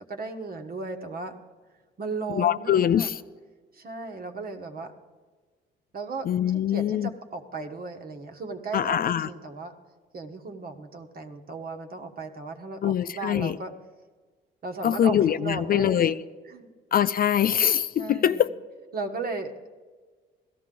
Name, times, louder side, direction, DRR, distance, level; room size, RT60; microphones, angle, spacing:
voice 1, 0.1-1.3 2.0-3.1 3.7-4.9 5.9-6.3 6.5-9.7 10.1-13.7 14.6-16.1 16.5-16.7 18.0-18.4 18.9-19.5, right 3 dB, 50° right, 5 dB, 1.3 m, -35 dB
voice 2, 2.4-3.2 6.2-7.1 8.7-9.3 12.8-13.6 14.8-16.1 16.9-18.5, left 10 dB, 50° left, 13 dB, 0.4 m, -23 dB
16.5 x 13.5 x 3.8 m, 1.4 s
cardioid pair, 90°, 20 cm